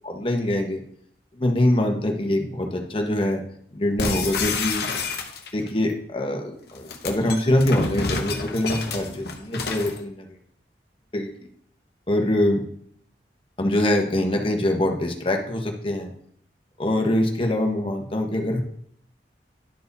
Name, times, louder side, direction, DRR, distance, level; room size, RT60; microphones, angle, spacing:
voice 1, 0.0-0.8 1.4-3.4 3.7-4.9 5.5-10.3 11.1-11.3 12.1-12.6 13.6-16.1 16.8-18.6, left 1 dB, 30° left, 3 dB, 1.1 m, -24 dB
sound 1, 4.0-5.7 6.7-10.0, left 4 dB, 60° left, 1.0 m, -29 dB
11.5 x 4.7 x 4.1 m, 0.68 s
head